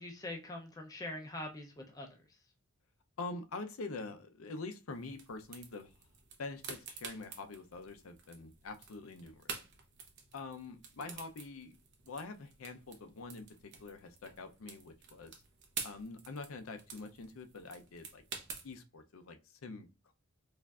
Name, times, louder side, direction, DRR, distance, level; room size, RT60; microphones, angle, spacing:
voice 1, 0.0-2.1, left 1 dB, 15° left, 0.5 m, -43 dB
voice 2, 3.2-5.9 6.4-9.5 10.3-11.8 12.1-15.4 15.8-18.2 18.6-19.9, left 3 dB, 75° left, 0.5 m, -45 dB
sound 1, 4.9-18.7, right 6 dB, 55° right, 0.7 m, -49 dB
4.4 x 2.5 x 2.3 m
head